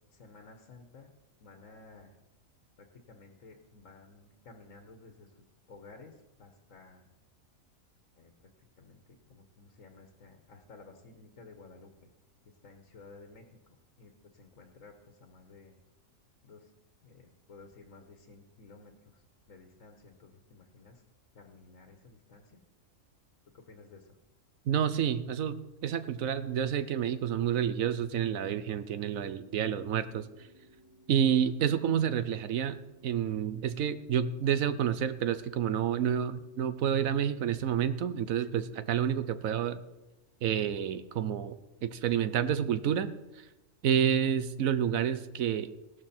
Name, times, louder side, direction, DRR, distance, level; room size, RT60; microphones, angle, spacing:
voice 1, 0.1-1.1 1.4-2.2 2.8-5.4 5.7-7.1 8.1-8.5 8.8-12.1 12.4-15.8 16.4-16.7 17.0-21.0 21.3-22.6 23.5-24.2, left 3 dB, 70° left, 5 dB, 1.6 m, -54 dB
voice 2, 24.7-30.3 31.1-39.8 40.4-41.6 41.8-43.1 43.4-43.5 43.8-45.7, right 9 dB, 75° right, 13 dB, 1.1 m, -29 dB
sound 1, 29.2-39.2, equal, 25° right, 4.6 m, -60 dB
16.5 x 12.5 x 4.4 m, 1.0 s
omnidirectional pair, 1.4 m